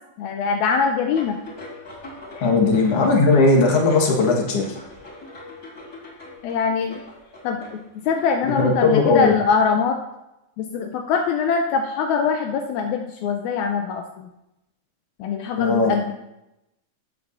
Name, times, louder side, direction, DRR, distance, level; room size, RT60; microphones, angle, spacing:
voice 1, 0.2-1.4 6.4-7.0 7.4-10.0 10.6-14.3 15.2-16.1, left 5 dB, 80° left, 4 dB, 2.0 m, -23 dB
sound 1, 1.1-9.2, left 2 dB, 30° left, 3.4 m, -41 dB
voice 2, 2.4-4.8 8.6-9.3 15.6-15.9, left 3 dB, 55° left, 0 dB, 2.3 m, -18 dB
13.0 x 8.8 x 2.6 m, 0.90 s
omnidirectional pair, 3.4 m